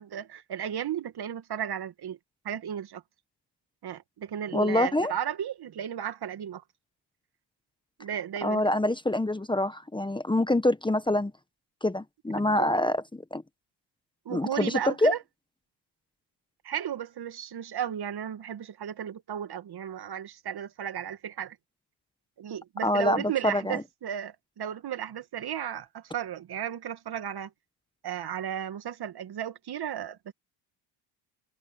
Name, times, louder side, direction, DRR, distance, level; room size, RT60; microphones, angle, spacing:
voice 1, 0.0-2.2 2.4-3.0 3.8-6.6 8.0-8.6 14.3-15.2 16.6-21.6 22.4-27.5 28.0-30.3, right 9 dB, 50° right, 2.4 m, -34 dB
voice 2, 4.5-5.1 8.4-11.3 11.8-13.4 14.3-15.1 22.8-23.8, left 1 dB, 10° left, 1.3 m, -26 dB
supercardioid pair, 75°, 49 cm